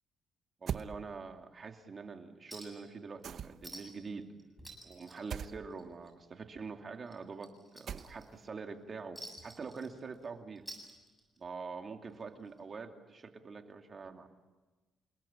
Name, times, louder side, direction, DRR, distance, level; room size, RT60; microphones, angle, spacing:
voice 1, 0.6-4.3 4.8-10.6 11.4-14.3, right 4 dB, 40° right, 4 dB, 2.7 m, -45 dB
sound 1, 0.7-0.9 3.2-3.8 5.3-5.6 7.9-8.4, right 8 dB, 60° right, 0.9 m, -39 dB
Chink clink, 2.5-2.9 3.2-3.3 3.6-4.1 4.4-6.1 6.4-6.6 7.1-8.5 9.2-10.3 10.6-11.5 12.6-12.7, right 1 dB, ahead, 7.6 m, -50 dB
28.5 x 19.5 x 8.9 m, 1.2 s
cardioid pair, 90°, 0 cm